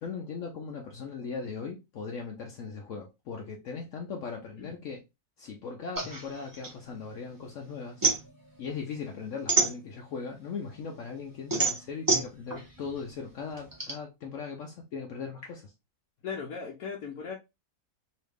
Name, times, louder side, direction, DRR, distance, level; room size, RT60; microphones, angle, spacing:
voice 1, 0.0-5.0 5.4-8.2 8.6-15.7, left 5 dB, 65° left, 0.9 m, -39 dB
sound 1, 6.0-7.5 7.8-10.3 10.8-13.9, right 3 dB, 20° right, 0.7 m, -29 dB
voice 2, 16.2-17.3, left 6 dB, 90° left, 1.3 m, -37 dB
3.1 x 2.8 x 3.2 m
omnidirectional pair, 1.5 m